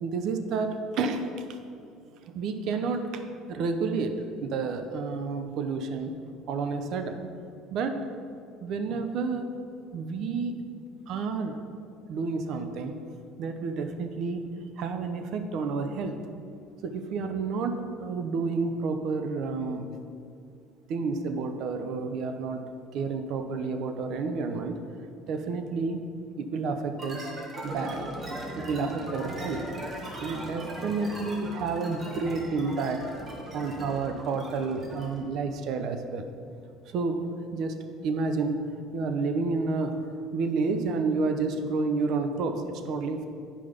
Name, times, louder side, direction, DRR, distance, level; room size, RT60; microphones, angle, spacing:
voice 1, 0.0-1.2 2.3-3.2 3.5-4.1 4.4-6.2 6.5-7.2 7.7-8.0 8.6-9.4 9.9-10.5 11.1-11.6 12.1-12.9 13.4-14.4 14.8-16.2 16.8-19.9 20.9-22.6 22.9-24.8 25.3-26.0 26.4-27.3 27.6-28.0 28.5-29.6 30.2-33.0 33.5-36.2 36.9-37.2 37.5-37.8 38.0-38.6 38.9-40.0 40.3-43.3, right 4 dB, 65° right, 6 dB, 0.8 m, -30 dB
sound 1, 27.0-35.3, right 1 dB, 35° right, 1.6 m, -38 dB
10.0 x 5.2 x 5.1 m, 2.5 s
supercardioid pair, 100°, 0 cm